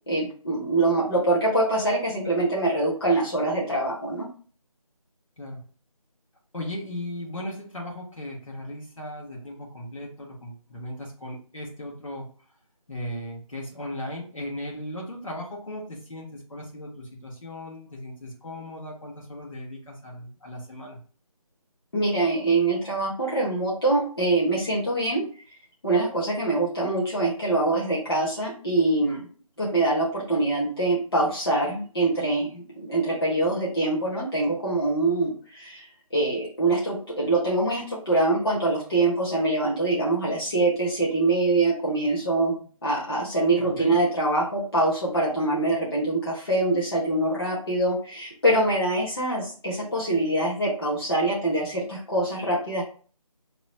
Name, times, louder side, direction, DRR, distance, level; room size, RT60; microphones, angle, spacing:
voice 1, 0.1-4.3 21.9-25.2 25.8-29.3 29.6-35.9 36.1-52.8, right 2 dB, 40° left, -6 dB, 1.1 m, -24 dB
voice 2, 6.5-12.2 12.9-21.0 43.6-44.0, left 1 dB, 60° left, -3 dB, 1.4 m, -37 dB
2.9 x 2.3 x 4.1 m, 0.41 s
figure-of-eight pair, 180°, 19 cm